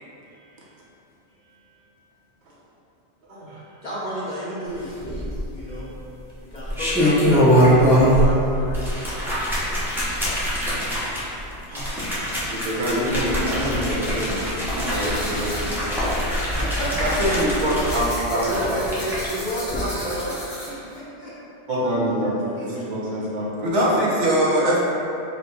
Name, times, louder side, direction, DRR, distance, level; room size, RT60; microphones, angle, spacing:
voice 1, 0.3-0.8 1.3-1.8 3.6-6.0 6.4-8.9 10.1-10.2 10.5-11.2 16.2-17.4 18.1-20.4 20.6-21.3 22.4-22.7 23.1-23.2, equal, 45° left, -8 dB, 0.9 m, -32 dB
voice 2, 3.3-3.6 11.7-12.2 12.5-15.8 17.9-18.8 21.7-22.4 22.6-23.7, equal, 50° right, -7 dB, 0.8 m, -27 dB
sound 1, 5.0-5.7 6.5-8.3 8.6-19.3 19.6-19.8, equal, ahead, 0.6 m, -22 dB
sound 2, 14.7-20.9, left 1 dB, 65° left, 1.6 m, -37 dB
voice 3, 17.0-17.8 22.6-22.9 23.6-24.8, right 1 dB, 80° right, -5 dB, 1.1 m, -21 dB
4.3 x 2.1 x 4.2 m, 2.8 s
omnidirectional pair, 1.2 m